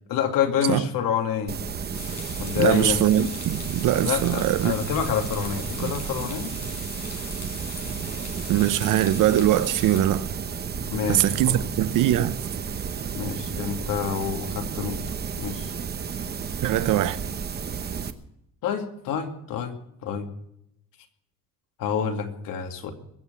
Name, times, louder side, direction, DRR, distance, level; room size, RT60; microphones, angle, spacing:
voice 1, 0.1-1.6 2.4-3.0 4.0-6.5 10.9-11.6 13.1-15.0 15.4-15.7 18.6-19.7 20.0-20.3 21.8-22.9, left 7 dB, 75° left, 2.5 m, -27 dB
sound 1, 1.5-18.1, right 6 dB, 30° right, 0.9 m, -32 dB
sound 2, 1.9-10.0, left 5 dB, 45° left, 4.6 m, -41 dB
voice 2, 2.6-4.7 5.8-5.9 8.5-10.3 11.1-12.4 16.6-17.2, right 12 dB, 65° right, 0.8 m, -22 dB
22.5 x 7.6 x 6.9 m
cardioid pair, 155°, 34 cm